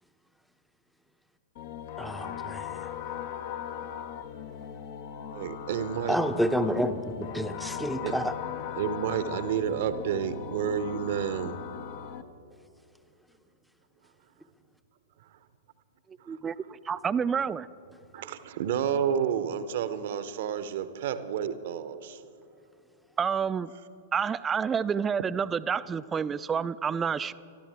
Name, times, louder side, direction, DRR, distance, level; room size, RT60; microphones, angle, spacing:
sound 1, 1.6-12.2, left 9 dB, 50° left, 0.7 m, -39 dB
voice 1, 2.0-2.8 6.1-8.3, equal, ahead, 9 dB, 0.7 m, -29 dB
voice 2, 5.3-6.4 8.0-8.2 8.8-11.6 16.3-16.4 18.1-22.2, right 8 dB, 55° right, 12 dB, 0.8 m, -30 dB
voice 3, 16.8-17.7 23.2-23.7 24.1-27.3, right 6 dB, 20° right, 16 dB, 0.3 m, -28 dB
23.0 x 13.0 x 3.5 m, 2.7 s
figure-of-eight pair, 100°, 0 cm